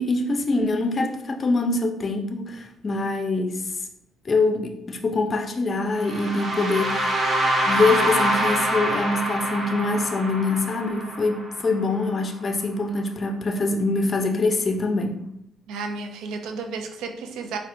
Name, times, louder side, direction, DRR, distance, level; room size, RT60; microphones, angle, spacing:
voice 1, 0.0-3.7 4.2-7.2 7.7-15.2, left 3 dB, 40° left, 4 dB, 0.5 m, -24 dB
sound 1, 6.0-11.9, right 1 dB, 40° right, 1.1 m, -25 dB
voice 2, 15.7-17.6, right 4 dB, 85° right, 5 dB, 0.4 m, -32 dB
4.1 x 2.1 x 2.6 m, 0.75 s
cardioid pair, 80°, 0 cm